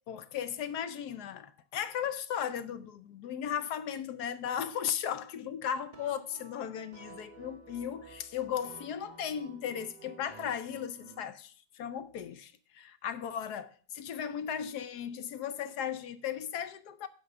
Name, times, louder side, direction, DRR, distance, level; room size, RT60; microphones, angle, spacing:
voice 1, 0.1-17.1, left 9 dB, 70° left, 1.0 m, -36 dB
sound 1, 5.9-11.3, right 4 dB, 55° right, 0.5 m, -52 dB
8.8 x 5.1 x 6.8 m
omnidirectional pair, 2.1 m